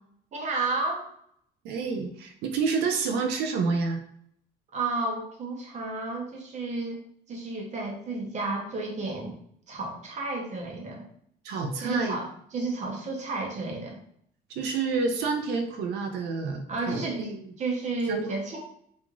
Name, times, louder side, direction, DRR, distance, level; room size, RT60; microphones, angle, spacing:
voice 1, 0.3-1.1 4.7-7.0 7.3-9.3 9.7-11.1 11.8-14.0 16.7-18.6, right 3 dB, 45° right, 0 dB, 0.7 m, -32 dB
voice 2, 1.6-4.0 11.4-12.2 14.5-17.4 18.1-18.3, right 4 dB, 80° right, 4 dB, 0.4 m, -29 dB
3.0 x 2.4 x 2.3 m, 0.66 s
cardioid pair, 110°, 17 cm